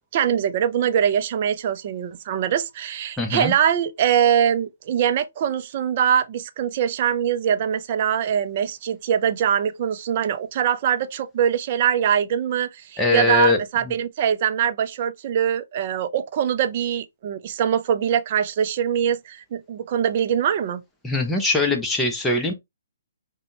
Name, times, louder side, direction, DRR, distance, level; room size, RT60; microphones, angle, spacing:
voice 1, 0.1-20.8, right 9 dB, 40° right, 0.4 m, -23 dB
voice 2, 3.2-3.5 13.0-13.6 13.8-13.9 21.0-22.5, left 3 dB, 5° left, 0.7 m, -21 dB
5.1 x 2.2 x 2.9 m
hypercardioid pair, 145°, 0 cm